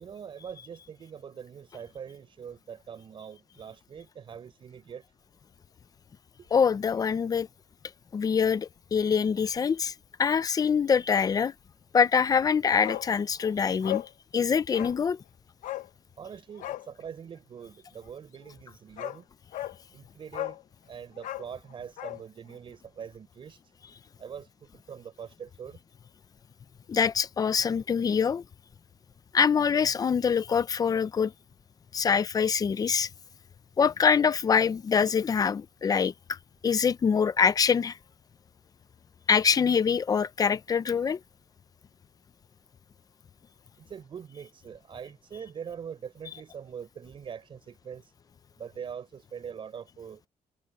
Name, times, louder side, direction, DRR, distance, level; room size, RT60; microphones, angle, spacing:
voice 1, 0.0-5.0 6.4-6.5 16.2-19.2 19.9-20.6 20.9-23.6 24.2-25.8 43.9-48.0 48.6-50.2, right 7 dB, 40° right, 5.5 m, -43 dB
voice 2, 6.5-7.5 8.1-9.9 10.2-11.5 11.9-14.0 14.3-15.2 26.9-28.4 29.3-31.3 31.9-33.1 33.8-36.1 36.6-37.9 39.3-41.2, left 6 dB, 30° left, 0.6 m, -24 dB
Bark, 12.8-13.1 13.4-13.5 13.8-14.1 14.7-15.0 15.6-15.9 16.6-16.9 18.5-18.6 19.0-19.2 19.5-19.8 20.3-20.6 21.2-22.2 22.5-22.6, left 15 dB, 80° left, 1.0 m, -35 dB
cardioid pair, 165°, 13 cm